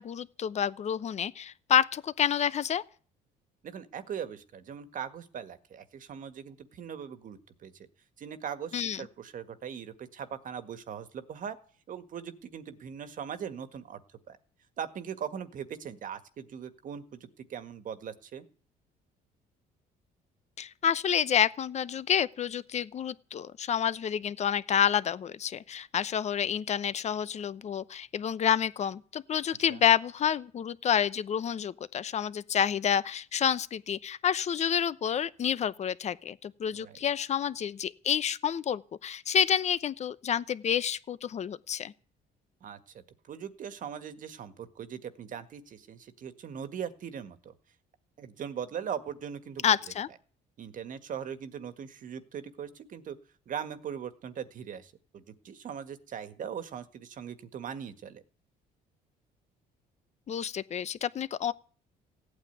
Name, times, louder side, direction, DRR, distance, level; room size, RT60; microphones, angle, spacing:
voice 1, 0.0-2.8 8.7-9.0 20.6-41.9 49.6-50.1 60.3-61.5, left 8 dB, 40° left, 0.8 m, -29 dB
voice 2, 3.6-7.7 8.2-11.6 11.9-14.0 14.3-14.4 14.8-18.4 29.7-29.8 36.7-37.0 42.6-42.8 43.3-47.5 48.2-49.8 50.6-53.2 53.4-58.2, right 8 dB, 50° right, 1.7 m, -40 dB
16.5 x 8.9 x 9.3 m
cardioid pair, 110°, 17 cm